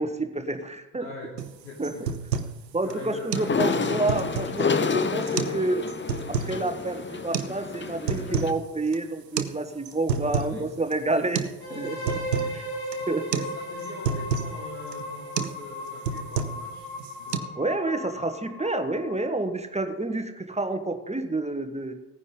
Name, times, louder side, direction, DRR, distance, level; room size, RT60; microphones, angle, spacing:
voice 1, 0.0-1.1 1.8-2.1 2.7-5.8 6.3-11.4 11.7-12.2 13.1-13.4 17.6-21.9, right 2 dB, 15° right, 7 dB, 1.2 m, -29 dB
voice 2, 1.0-1.4 1.6-2.2 2.8-4.1 10.1-11.3 11.7-12.1 12.4-12.6 13.3-16.9 17.2-17.5, left 3 dB, 75° left, -2 dB, 3.3 m, -43 dB
sound 1, 1.4-1.5 1.8-2.6 2.9-3.0 3.3-3.5 3.9-4.6 5.2-5.6 5.9-6.6 7.3-7.5 7.9-8.6 8.9-9.0 9.4-9.5 9.9-10.6 10.9-11.0 11.4-11.6 11.8-12.5 12.9-13.1 13.3-13.5 13.8-14.5 14.9-15.1 15.4-15.6 15.9-16.7 17.0-17.4, right 6 dB, 90° right, 0.7 m, -29 dB
sound 2, 3.3-8.5, left 5 dB, 25° left, 1.0 m, -29 dB
sound 3, 11.6-19.4, equal, 50° left, 4.6 m, -36 dB
16.5 x 9.6 x 3.8 m, 1.0 s
figure-of-eight pair, 45°, 48 cm